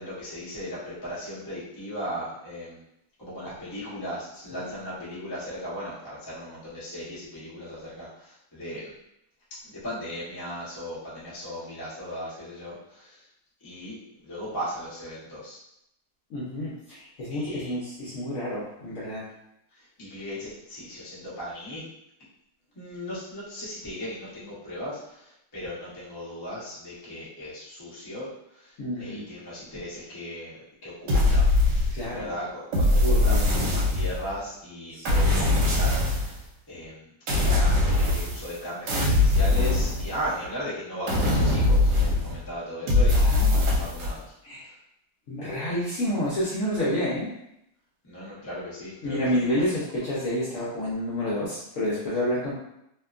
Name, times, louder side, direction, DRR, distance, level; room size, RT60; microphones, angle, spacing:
voice 1, 0.0-2.8 3.2-8.9 9.6-13.3 13.6-15.6 17.3-17.8 19.8-21.9 22.7-31.5 32.1-37.1 37.4-44.3 44.6-44.7 48.0-49.3, equal, 25° left, -9 dB, 0.5 m, -37 dB
voice 2, 16.3-19.2 28.8-29.2 31.9-32.3 33.0-33.5 34.9-35.3 43.1-43.7 44.4-44.6 45.3-47.3 49.0-52.5, left 1 dB, 65° left, -7 dB, 0.8 m, -29 dB
sound 1, 31.1-32.2 32.7-34.3 35.0-36.4 37.3-38.6 38.9-40.5 41.1-42.4 42.9-44.1, left 2 dB, 80° right, 1.3 m, -22 dB
2.8 x 2.2 x 2.4 m, 0.80 s
omnidirectional pair, 1.9 m